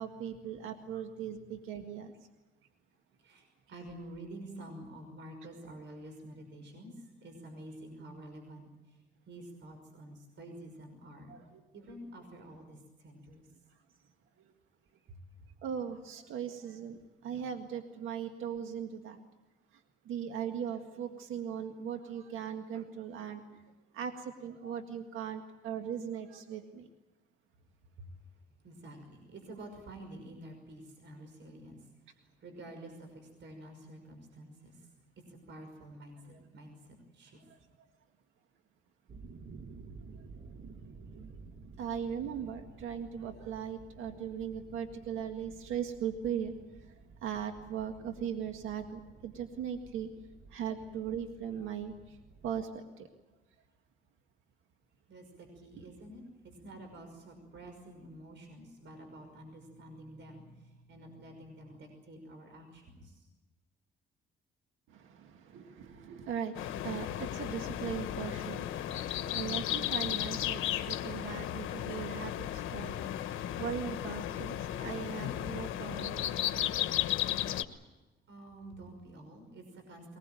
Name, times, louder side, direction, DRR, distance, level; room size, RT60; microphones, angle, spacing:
voice 1, 0.0-2.1 11.3-11.6 15.6-19.2 20.1-23.4 23.9-26.9 36.3-36.4 41.1-41.2 41.8-46.5 47.2-50.1 50.5-52.2 52.4-53.1 64.9-76.5 76.9-77.5, right 8 dB, 85° right, 6 dB, 1.9 m, -39 dB
voice 2, 3.2-9.0 9.3-11.4 11.7-13.5 15.1-15.2 28.0-28.1 28.6-34.9 35.2-37.4 55.1-63.3 78.3-80.2, right 1 dB, 65° right, 5 dB, 5.8 m, -49 dB
sound 1, 39.1-52.7, right 4 dB, 50° right, 1.6 m, -53 dB
sound 2, 66.5-77.6, left 12 dB, 85° left, 1.2 m, -35 dB
22.5 x 20.0 x 9.1 m, 1.1 s
cardioid pair, 90°, 20 cm